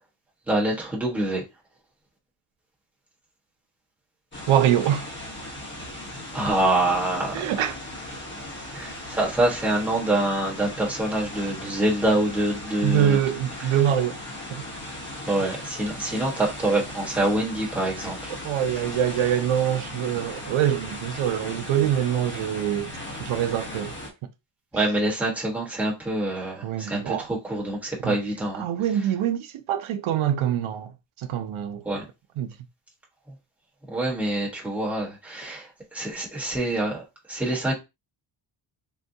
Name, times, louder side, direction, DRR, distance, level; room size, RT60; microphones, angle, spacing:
voice 1, 0.5-1.4 6.3-7.5 8.7-13.2 15.2-18.3 24.7-28.6 31.8-32.1 33.9-37.7, right 1 dB, 5° right, 1.1 m, -26 dB
sound 1, 4.3-24.1, left 1 dB, 25° left, 1.1 m, -37 dB
voice 2, 4.5-5.0 7.3-7.8 12.8-14.2 14.5-14.7 18.4-22.9 23.2-23.9 26.6-27.3 28.0-28.2 28.6-30.9 31.2-31.8 32.4-32.5, right 10 dB, 85° right, 0.6 m, -24 dB
3.8 x 2.2 x 2.6 m
wide cardioid pair, 135°, 48 cm